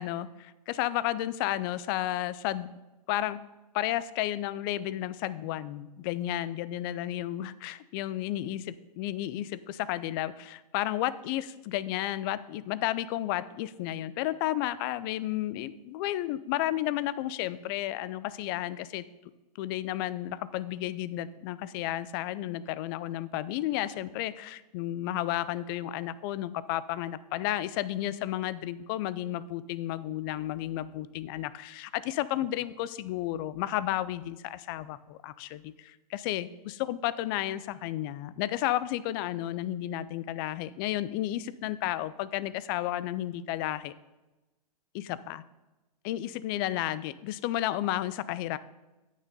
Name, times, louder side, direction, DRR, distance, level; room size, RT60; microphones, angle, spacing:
voice 1, 0.0-2.7 3.1-3.4 3.7-19.0 19.6-43.9 44.9-45.4 46.0-48.6, left 14 dB, 35° left, 16 dB, 0.4 m, -32 dB
8.9 x 6.2 x 5.4 m, 1.1 s
hypercardioid pair, 140°, 21 cm